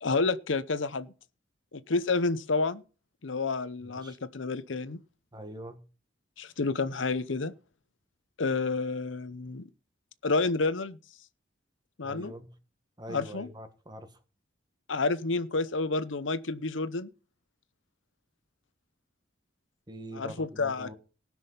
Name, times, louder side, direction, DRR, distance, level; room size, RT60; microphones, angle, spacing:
voice 1, 0.0-1.1 1.7-2.8 3.2-5.0 6.4-7.5 8.4-9.6 10.2-11.0 12.0-12.3 13.1-13.5 14.9-17.1 20.1-20.9, left 3 dB, 80° left, 0.8 m, -29 dB
voice 2, 3.8-4.2 5.3-5.8 12.0-12.5 13.0-14.2 19.9-20.9, right 1 dB, 20° right, 1.6 m, -43 dB
18.5 x 6.3 x 5.7 m
head